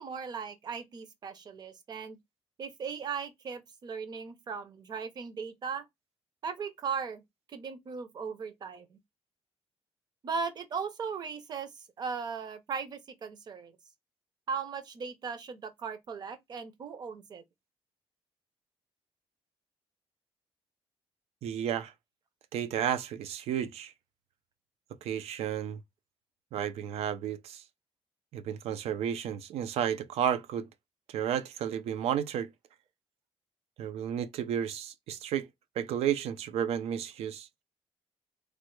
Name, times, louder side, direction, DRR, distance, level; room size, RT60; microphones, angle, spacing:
voice 1, 0.0-2.2 2.6-5.8 6.4-7.2 7.5-9.0 10.2-11.7 12.0-13.7 14.5-17.4, right 5 dB, 45° right, 0.6 m, -37 dB
voice 2, 21.4-21.9 22.5-23.9 25.0-25.8 26.5-27.6 28.3-30.7 31.1-32.5 33.8-35.5 35.8-37.5, right 9 dB, 85° right, 0.4 m, -32 dB
3.2 x 2.1 x 3.0 m
cardioid pair, 155°, 10 cm